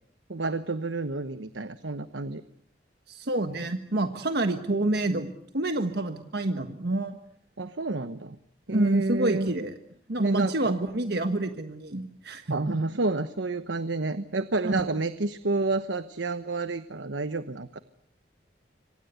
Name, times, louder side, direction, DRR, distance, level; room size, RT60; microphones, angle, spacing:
voice 1, 0.3-2.4 7.6-8.4 8.7-9.5 10.2-10.5 12.5-17.8, right 3 dB, 90° right, 12 dB, 1.1 m, -29 dB
voice 2, 3.1-7.2 8.7-9.8 10.1-12.8 14.6-14.8, right 2 dB, 60° right, 7 dB, 1.5 m, -28 dB
27.0 x 24.5 x 8.1 m, 0.67 s
head